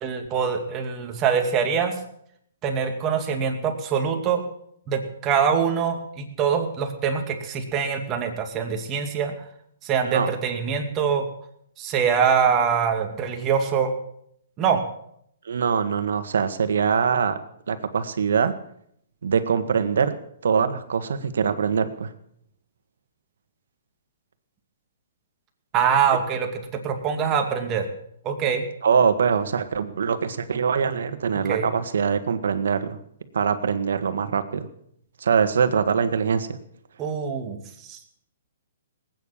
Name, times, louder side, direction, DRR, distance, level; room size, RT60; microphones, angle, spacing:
voice 1, 0.0-1.9 2.6-4.4 4.9-9.3 9.8-11.3 11.8-13.9 14.6-14.8 25.7-26.5 26.8-27.9 28.2-28.6 31.5-31.7 37.0-37.6 37.8-38.0, right 7 dB, 25° right, 4 dB, 2.3 m, -24 dB
voice 2, 15.5-17.4 17.7-18.5 19.2-20.1 20.4-22.1 28.8-33.0 33.3-34.7 35.2-36.5, right 6 dB, 80° right, 10 dB, 1.7 m, -23 dB
19.0 x 9.4 x 7.3 m, 0.71 s
hypercardioid pair, 150°, 0 cm